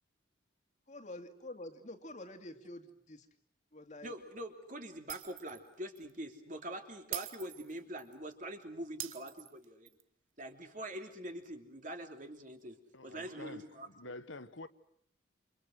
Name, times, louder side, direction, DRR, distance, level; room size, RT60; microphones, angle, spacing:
voice 1, 0.9-3.3 3.7-4.2, left 1 dB, 35° left, 2.3 m, -47 dB
voice 2, 4.0-9.9 10.4-12.8 13.0-13.9, right 1 dB, 40° right, 3.0 m, -44 dB
Shatter, 5.1-5.7 6.0-6.1 7.1-8.1 9.0-10.0, right 13 dB, 85° right, 1.2 m, -44 dB
voice 3, 12.9-14.7, left 2 dB, 75° left, 1.3 m, -48 dB
29.5 x 27.5 x 6.5 m
head